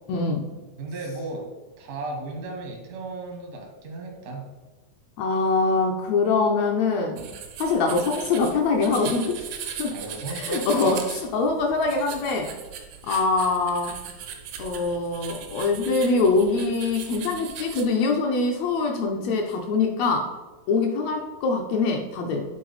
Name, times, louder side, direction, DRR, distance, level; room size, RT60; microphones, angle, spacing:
voice 1, 0.1-0.4 5.2-7.2 7.6-9.9 10.3-12.5 13.1-13.9 14.6-20.3 20.7-22.4, left 3 dB, 75° left, 1 dB, 1.7 m, -23 dB
voice 2, 0.8-1.5 1.8-4.5 9.9-11.0, right 2 dB, 55° right, 0 dB, 1.0 m, -35 dB
sound 1, 7.2-17.9, right 8 dB, 80° right, 2.1 m, -38 dB
7.6 x 3.9 x 4.0 m, 1.2 s
omnidirectional pair, 3.5 m